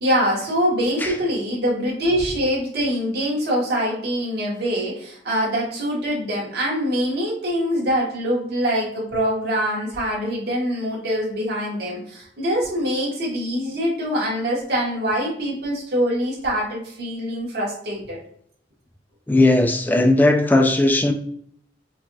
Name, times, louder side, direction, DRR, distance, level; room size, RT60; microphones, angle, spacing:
voice 1, 0.0-18.2, equal, 65° right, 1.4 m, -24 dB
voice 2, 19.3-21.1, left 2 dB, 10° left, 0.4 m, -17 dB
4.6 x 2.7 x 2.3 m
head